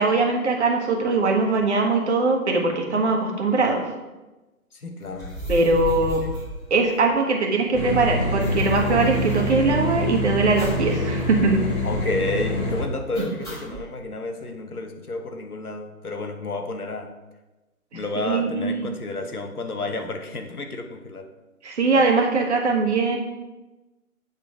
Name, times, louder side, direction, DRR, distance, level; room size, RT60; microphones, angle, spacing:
voice 1, 0.0-3.8 5.5-6.2 6.7-11.6 13.7-13.8 18.2-18.9 21.6-23.2, right 3 dB, 50° right, 2 dB, 1.5 m, -21 dB
voice 2, 4.7-5.4 11.8-17.1 17.9-21.3, left 2 dB, 80° left, 5 dB, 1.2 m, -31 dB
sound 1, 5.1-7.4 7.7-7.8 7.9-10.1 10.6-11.0 11.3-11.4 11.7-12.2 13.1-13.9, right 1 dB, 5° left, 2.0 m, -35 dB
sound 2, 7.7-12.8, left 1 dB, 35° left, 1.8 m, -25 dB
8.6 x 4.1 x 4.8 m, 1.1 s
figure-of-eight pair, 140°, 44 cm